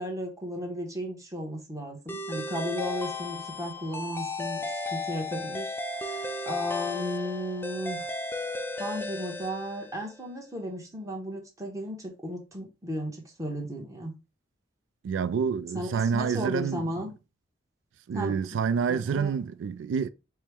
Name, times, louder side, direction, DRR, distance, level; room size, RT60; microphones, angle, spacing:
voice 1, 0.0-8.1 8.5-14.1 15.7-17.1 18.1-19.3, equal, 15° right, 0.8 m, -35 dB
sound 1, 2.1-10.2, left 2 dB, 10° left, 0.3 m, -35 dB
voice 2, 15.0-16.8 18.1-20.1, right 6 dB, 80° right, 0.3 m, -28 dB
4.4 x 2.1 x 3.4 m
head